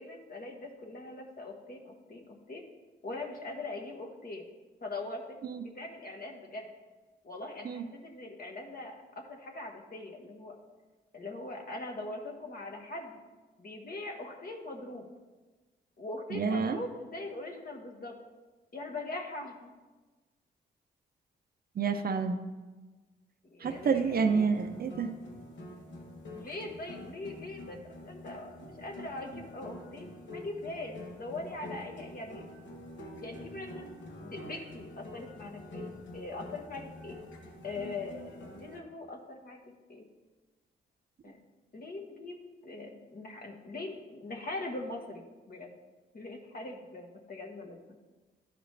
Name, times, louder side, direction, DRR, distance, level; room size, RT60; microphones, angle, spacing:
voice 1, 0.0-2.6 3.0-4.4 4.8-6.7 7.2-10.6 11.1-13.2 13.6-15.1 16.0-18.2 18.7-19.7 23.4-24.4 26.3-32.4 33.1-33.9 34.2-35.9 36.1-37.2 37.6-39.6 39.9-40.1 41.2-41.4 41.7-42.4 42.6-45.8 46.1-48.0, left 2 dB, 50° left, 2 dB, 1.3 m, -41 dB
voice 2, 16.3-16.8 21.8-22.4 23.6-25.1, right 5 dB, 50° right, 7 dB, 0.6 m, -28 dB
sound 1, 23.6-38.8, left 1 dB, 65° left, 1.3 m, -46 dB
11.5 x 4.9 x 3.3 m, 1.3 s
supercardioid pair, 55°, 20 cm